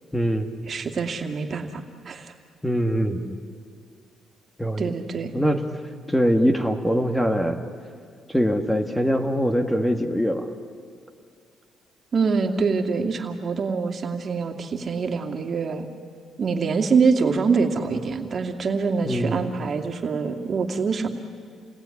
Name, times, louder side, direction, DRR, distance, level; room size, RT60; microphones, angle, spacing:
voice 1, 0.1-0.5 2.6-3.4 4.6-4.9 5.3-5.6 6.1-7.6 8.3-10.5 19.1-19.4, equal, 5° left, 6 dB, 1.9 m, -22 dB
voice 2, 0.7-2.3 4.8-5.3 12.1-15.9 16.4-21.1, right 5 dB, 45° right, 4 dB, 2.5 m, -25 dB
29.0 x 20.0 x 9.9 m, 2.2 s
cardioid pair, 90°, 0 cm